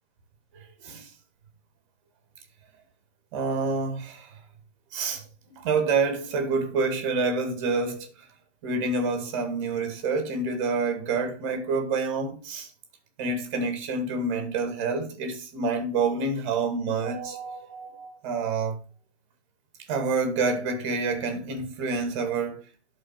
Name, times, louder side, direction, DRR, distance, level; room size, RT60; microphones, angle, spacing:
voice 1, 0.5-1.1 3.3-4.3 4.9-5.2 5.6-8.1 8.6-12.7 13.2-18.8 19.9-22.6, right 4 dB, 25° right, 1.9 m, -28 dB
11.0 x 4.2 x 5.8 m
figure-of-eight pair, 135°, 35 cm